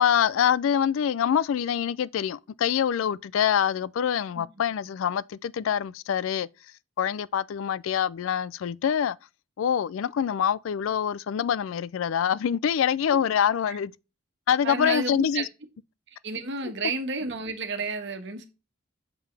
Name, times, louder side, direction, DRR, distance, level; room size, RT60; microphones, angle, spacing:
voice 1, 0.0-6.5 7.0-9.2 9.6-13.9 14.5-15.4, left 8 dB, 70° left, 0.3 m, -25 dB
voice 2, 14.6-15.5 16.2-18.5, right 3 dB, 55° right, 1.4 m, -31 dB
6.8 x 5.5 x 3.3 m
head